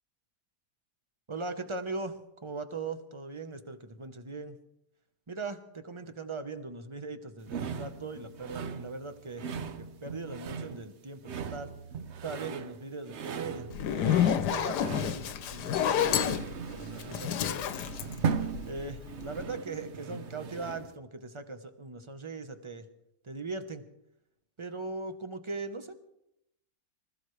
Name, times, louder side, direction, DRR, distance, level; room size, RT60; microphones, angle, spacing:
voice 1, 1.3-4.6 5.3-9.4 9.8-11.7 12.2-17.7 18.6-22.8 23.2-23.8 24.6-25.9, right 3 dB, 25° right, 8 dB, 0.8 m, -40 dB
sound 1, 7.5-21.0, right 6 dB, 55° right, 0.9 m, -38 dB
Zipper (clothing), 13.7-19.0, left 9 dB, 80° left, 1.3 m, -29 dB
25.0 x 14.5 x 3.2 m, 0.84 s
omnidirectional pair, 1.7 m